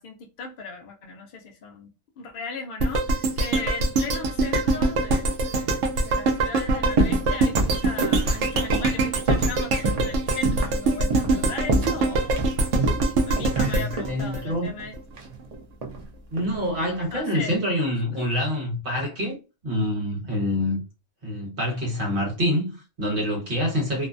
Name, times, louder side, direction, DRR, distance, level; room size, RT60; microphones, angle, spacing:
voice 1, 0.0-1.9 2.2-5.7 6.0-12.4 13.2-14.9 17.1-17.6 18.1-18.3, left 4 dB, 70° left, 0.5 m, -37 dB
sound 1, 2.8-15.0 15.4-15.5, right 2 dB, 65° right, 0.8 m, -24 dB
sound 2, 7.0-7.3 7.6-9.6 9.8-10.1 10.5-10.8 11.1-11.4 11.7-12.5 12.8-14.2 15.1-16.1 16.3-16.8, right 2 dB, 90° right, 0.3 m, -26 dB
voice 2, 13.6-14.7 16.3-19.4 19.6-20.8 21.2-24.1, left 1 dB, 40° right, 1.3 m, -26 dB
2.6 x 2.1 x 2.5 m
omnidirectional pair, 1.5 m